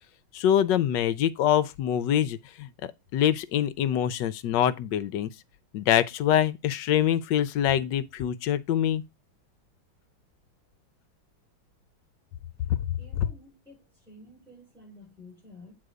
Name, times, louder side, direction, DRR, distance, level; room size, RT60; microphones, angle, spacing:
voice 1, 0.3-2.7 3.1-5.3 5.7-9.0, left 10 dB, 75° left, 1.2 m, -24 dB
voice 2, 13.0-15.8, left 1 dB, ahead, 5.1 m, -51 dB
7.9 x 4.1 x 4.8 m
omnidirectional pair, 2.2 m